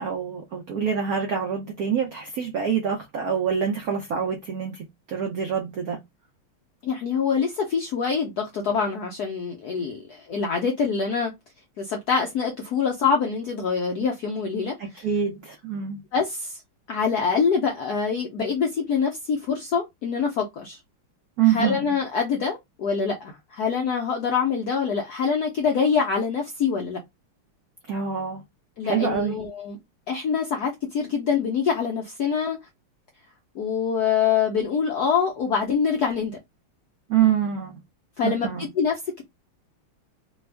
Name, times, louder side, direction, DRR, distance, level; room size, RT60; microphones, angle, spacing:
voice 1, 0.0-6.0 14.8-16.0 21.4-21.8 27.9-28.4 28.8-29.4 37.1-37.8 38.2-38.6, right 8 dB, 80° right, 0.8 m, -25 dB
voice 2, 6.8-11.3 11.8-15.0 16.1-16.6 16.9-20.8 21.5-27.0 28.8-29.8 30.1-32.6 33.5-36.4 38.2-39.2, left 6 dB, 75° left, 0.8 m, -25 dB
3.4 x 2.3 x 3.2 m
omnidirectional pair, 2.4 m